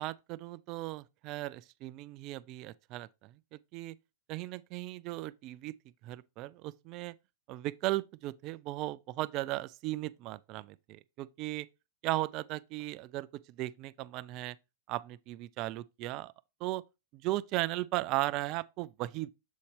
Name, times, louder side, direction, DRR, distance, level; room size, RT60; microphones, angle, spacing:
voice 1, 0.0-4.0 4.3-5.7 6.0-7.1 7.5-11.7 12.0-14.6 14.9-16.3 16.6-16.8 17.1-19.3, right 17 dB, 45° right, 0.3 m, -36 dB
7.3 x 4.1 x 3.2 m
hypercardioid pair, 105°, 0 cm